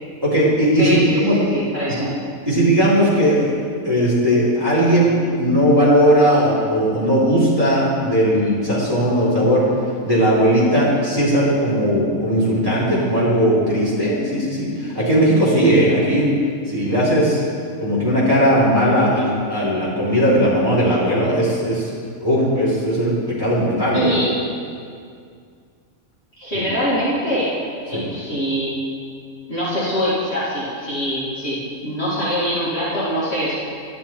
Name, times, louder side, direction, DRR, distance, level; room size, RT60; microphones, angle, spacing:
voice 1, 0.2-1.4 2.4-3.5 3.8-9.6 10.0-16.3 16.7-17.4 17.8-21.9 22.2-24.1 26.5-26.6 27.9-28.1, equal, 15° right, -9 dB, 3.1 m, -17 dB
voice 2, 0.7-2.1 23.9-24.4 26.4-27.5 27.8-28.8 29.5-33.5, equal, 45° left, -9 dB, 2.6 m, -23 dB
11.5 x 10.5 x 4.4 m, 2.2 s
omnidirectional pair, 1.5 m